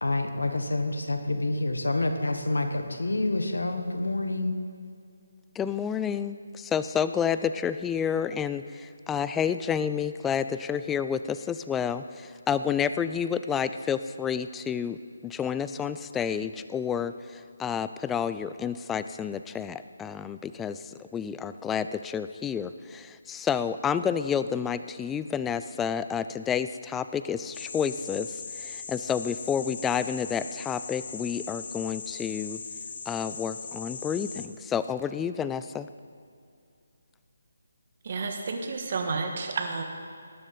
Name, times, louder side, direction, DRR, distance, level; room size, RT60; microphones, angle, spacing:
voice 1, 0.0-4.6, left 2 dB, 80° left, 7 dB, 1.3 m, -28 dB
voice 2, 5.6-15.0 15.2-32.6 33.1-35.9, left 7 dB, 10° left, 12 dB, 0.3 m, -30 dB
sound 1, 27.5-34.5, left 5 dB, 45° left, 0.8 m, -39 dB
voice 3, 38.0-39.8, right 4 dB, 45° right, 4 dB, 1.6 m, -31 dB
19.0 x 9.8 x 4.1 m, 2.4 s
figure-of-eight pair, 150°, 0 cm